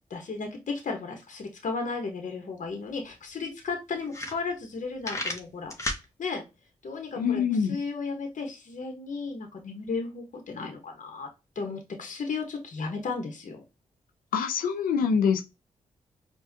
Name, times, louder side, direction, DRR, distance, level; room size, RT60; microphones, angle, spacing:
voice 1, 0.1-5.9 6.2-6.4 6.8-7.4 7.7-11.3 11.5-13.6, left 4 dB, 60° left, 1.1 m, -34 dB
sound 1, 2.7-2.8 3.1-3.2 3.7-3.8 4.0-4.7 5.0-6.0, left 2 dB, 20° left, 1.1 m, -32 dB
voice 2, 7.2-7.8 14.3-15.4, left 6 dB, 90° left, 0.5 m, -25 dB
4.9 x 2.4 x 2.7 m
supercardioid pair, 40°, 14 cm